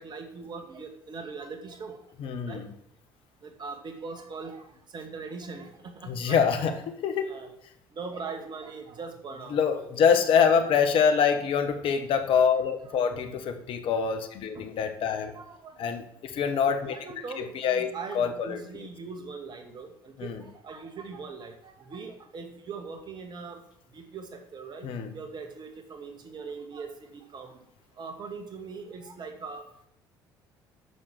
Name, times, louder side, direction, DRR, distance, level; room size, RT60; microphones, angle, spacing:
voice 1, 0.0-2.0 2.5-2.6 3.4-4.6 4.9-6.4 7.2-7.5 8.0-9.9 10.7-10.9 12.8-13.0 14.5-14.7 15.3-15.8 16.9-20.3 20.6-23.6 23.9-24.9 25.1-27.5 28.0-29.6, right 4 dB, 45° right, 6 dB, 2.1 m, -41 dB
voice 2, 2.2-2.7 6.1-7.3 9.5-15.3 15.8-17.0 17.4-18.6 20.2-20.4 24.8-25.1, left 6 dB, 55° left, 8 dB, 1.3 m, -25 dB
9.7 x 6.6 x 6.2 m, 0.74 s
figure-of-eight pair, 50°, 11 cm